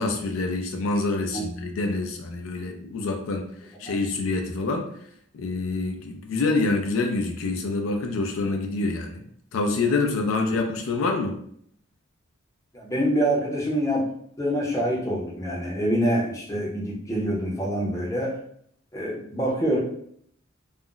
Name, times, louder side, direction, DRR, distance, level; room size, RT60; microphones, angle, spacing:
voice 1, 0.0-3.5 3.8-4.9 5.3-9.2 9.5-11.4, left 3 dB, 70° left, 3 dB, 0.4 m, -26 dB
voice 2, 12.7-14.0 14.4-18.3 18.9-19.8, equal, 15° left, -3 dB, 0.6 m, -25 dB
2.4 x 2.0 x 3.7 m, 0.65 s
head